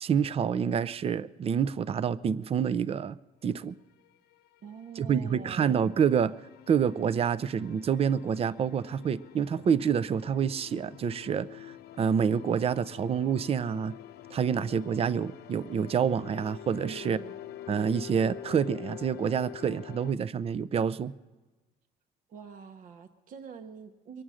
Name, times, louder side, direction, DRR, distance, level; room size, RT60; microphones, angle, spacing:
voice 1, 0.0-3.2 3.4-3.8 5.0-6.3 6.7-13.9 14.3-17.2 17.7-21.1, right 7 dB, 35° right, 17 dB, 0.5 m, -27 dB
sound 1, 4.0-20.1, left 12 dB, 75° left, 0.7 m, -46 dB
voice 2, 4.6-5.8 16.8-17.4 22.3-24.2, right 6 dB, 55° right, 7 dB, 1.0 m, -45 dB
23.5 x 8.8 x 6.3 m, 1.2 s
cardioid pair, 110°, 17 cm